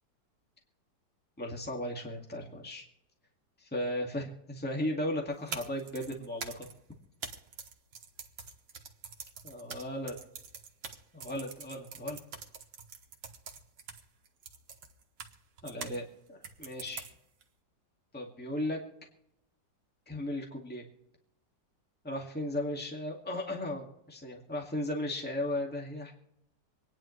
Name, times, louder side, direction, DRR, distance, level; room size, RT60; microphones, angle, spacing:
voice 1, 1.4-2.8 3.6-6.7 9.4-10.2 11.1-12.2 15.6-17.1 18.1-18.8 20.1-20.8 22.0-26.1, left 1 dB, 5° left, 0 dB, 2.0 m, -36 dB
sound 1, 5.3-16.0 16.4-17.4, right 6 dB, 80° right, 1.9 m, -45 dB
26.5 x 10.0 x 3.2 m, 0.80 s
omnidirectional pair, 2.0 m